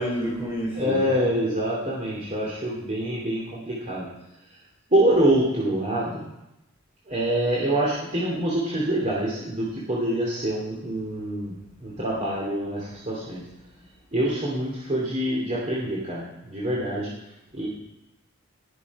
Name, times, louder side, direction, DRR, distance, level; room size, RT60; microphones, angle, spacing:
voice 1, 0.0-1.1 17.6-17.7, equal, 10° right, -5 dB, 3.1 m, -29 dB
voice 2, 0.7-4.1 4.9-6.2 7.1-13.4 14.1-17.1 17.5-17.7, right 1 dB, 35° right, -6 dB, 2.7 m, -25 dB
19.5 x 6.8 x 4.7 m, 0.90 s
head